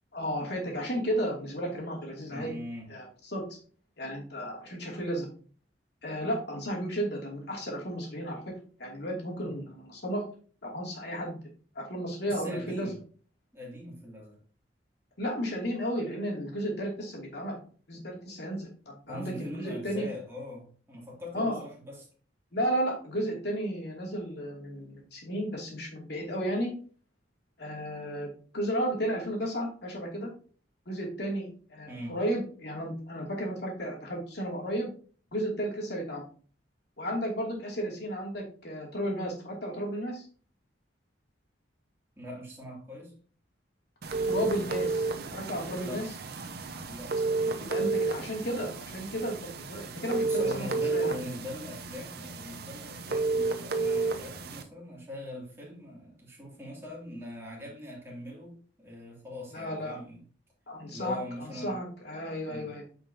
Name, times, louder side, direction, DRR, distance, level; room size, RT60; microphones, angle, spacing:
voice 1, 0.1-2.5 2.9-3.4 4.0-5.3 6.0-8.4 8.8-10.2 10.6-11.4 11.7-12.9 15.2-17.6 17.9-20.1 21.3-21.6 22.5-26.7 27.6-30.3 30.9-34.9 35.3-36.2 37.0-40.3 44.2-46.0 47.6-51.2 59.5-60.0 60.7-62.8, equal, 60° left, -2 dB, 2.7 m, -33 dB
voice 2, 2.3-2.9 9.4-9.6 12.2-13.0 13.5-14.4 19.1-22.1 31.9-32.2 42.2-43.1 45.8-46.0 46.8-48.1 50.2-60.2 60.9-61.8 62.5-62.7, left 1 dB, 15° right, -4 dB, 2.8 m, -42 dB
sound 1, 44.0-54.6, right 3 dB, 55° right, 0.7 m, -32 dB
9.0 x 5.3 x 2.8 m, 0.42 s
head